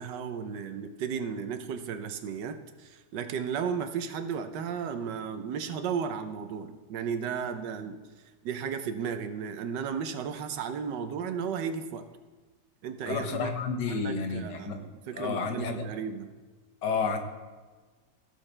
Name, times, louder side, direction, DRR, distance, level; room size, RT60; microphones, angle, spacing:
voice 1, 0.0-8.0 8.4-12.0 12.8-13.5 13.9-16.3, right 7 dB, 90° right, 9 dB, 1.4 m, -34 dB
voice 2, 13.1-14.8 15.1-15.9 16.8-17.2, left 5 dB, 85° left, 6 dB, 1.6 m, -30 dB
16.5 x 6.7 x 3.3 m, 1.3 s
omnidirectional pair, 1.8 m